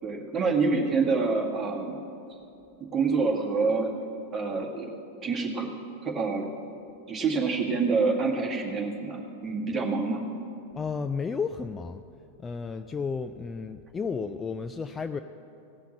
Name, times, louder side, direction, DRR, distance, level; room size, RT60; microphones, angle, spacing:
voice 1, 0.0-2.0 2.9-3.9 4.3-4.9 5.2-5.7 6.0-6.5 7.1-10.3, right 4 dB, 20° right, -1 dB, 2.0 m, -27 dB
voice 2, 10.7-12.0 12.4-15.2, left 5 dB, 15° left, 8 dB, 0.4 m, -32 dB
17.0 x 5.8 x 8.5 m, 2.8 s
figure-of-eight pair, 90°, 0 cm